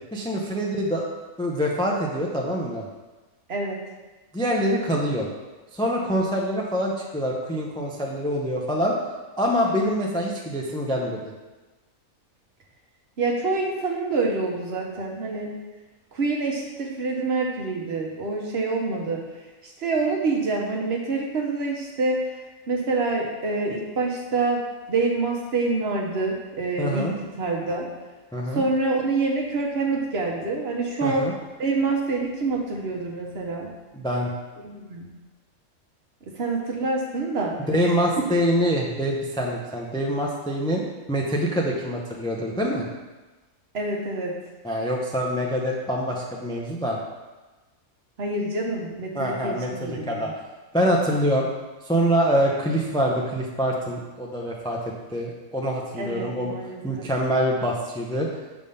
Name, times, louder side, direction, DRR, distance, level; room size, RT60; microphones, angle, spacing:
voice 1, 0.1-1.0 1.4-2.9 4.3-5.3 5.7-8.9 9.4-11.3 26.8-27.1 28.3-28.6 31.0-31.3 33.9-34.3 37.7-40.8 41.1-42.9 44.6-47.0 49.1-50.3 50.7-51.5 51.8-54.8 55.1-56.5 56.8-58.3, equal, 5° left, -1 dB, 0.3 m, -25 dB
voice 2, 3.5-3.8 13.2-15.5 16.1-22.4 22.7-24.6 24.9-27.1 27.4-27.9 28.5-31.3 31.6-33.7 34.6-35.1 36.3-38.0 43.7-44.3 48.2-50.3 56.0-57.1, right 3 dB, 50° right, 0 dB, 1.1 m, -26 dB
6.6 x 3.6 x 5.4 m, 1.2 s
omnidirectional pair, 1.5 m